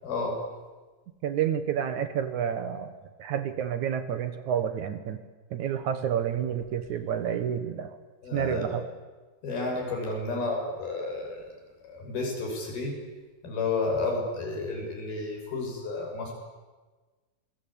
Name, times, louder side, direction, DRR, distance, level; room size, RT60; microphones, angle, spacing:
voice 1, 0.0-0.4 8.2-8.8 9.4-11.4 11.8-13.0 13.4-16.3, left 3 dB, 85° left, 1 dB, 8.2 m, -31 dB
voice 2, 1.2-2.9 3.2-5.2 5.5-8.0 8.3-8.9, right 9 dB, 65° right, 10 dB, 2.3 m, -29 dB
27.0 x 21.5 x 8.8 m, 1.3 s
omnidirectional pair, 4.2 m